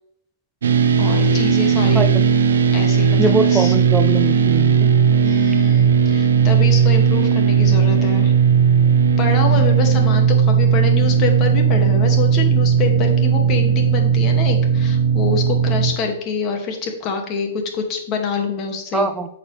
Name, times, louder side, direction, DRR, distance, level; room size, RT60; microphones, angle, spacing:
sound 1, 0.6-15.9, right 7 dB, 80° right, 0.9 m, -16 dB
voice 1, 1.0-2.1 2.7-3.7 5.2-8.3 9.2-19.1, left 5 dB, 35° left, 3 dB, 2.3 m, -26 dB
voice 2, 3.2-4.9 18.9-19.3, right 3 dB, 10° right, 9 dB, 0.5 m, -22 dB
11.0 x 6.5 x 3.4 m, 0.77 s
hypercardioid pair, 130°, 0 cm